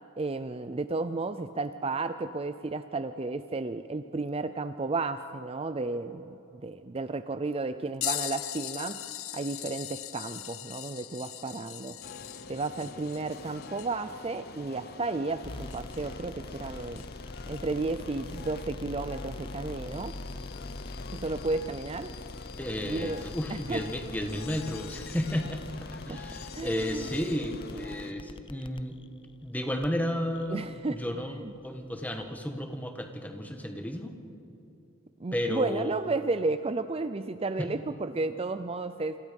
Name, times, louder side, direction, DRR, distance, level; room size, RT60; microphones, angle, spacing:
voice 1, 0.2-9.0 9.3-12.0 12.5-17.0 17.5-20.2 21.1-22.1 22.8-23.2 23.5-23.8 26.1-26.2 26.5-27.1 30.5-31.0 31.4-31.5 35.2-39.2, right 3 dB, 30° right, 11 dB, 0.5 m, -33 dB
sound 1, 8.0-16.2 16.9-17.1 19.3-19.4 20.5-20.6 21.7-21.8, left 15 dB, 90° left, 0.8 m, -40 dB
sound 2, 12.0-28.1, left 4 dB, 50° left, 0.9 m, -45 dB
sound 3, 15.4-32.4, left 2 dB, 25° left, 0.6 m, -44 dB
voice 2, 22.6-29.0 29.4-30.6 30.9-34.1 35.3-35.9 37.6-37.7, left 1 dB, 10° left, 4 dB, 1.6 m, -33 dB
28.5 x 25.5 x 5.4 m, 3.0 s
head